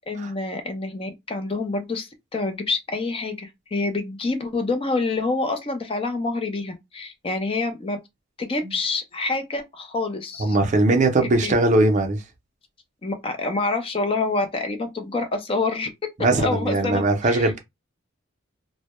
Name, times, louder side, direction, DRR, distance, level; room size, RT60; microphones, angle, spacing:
voice 1, 0.1-8.0 8.4-10.6 11.2-11.5 13.0-15.9 16.3-17.5, left 3 dB, 30° left, 0.5 m, -27 dB
voice 2, 10.4-12.2 16.2-17.6, right 2 dB, 35° right, 0.5 m, -20 dB
2.2 x 2.0 x 2.9 m
head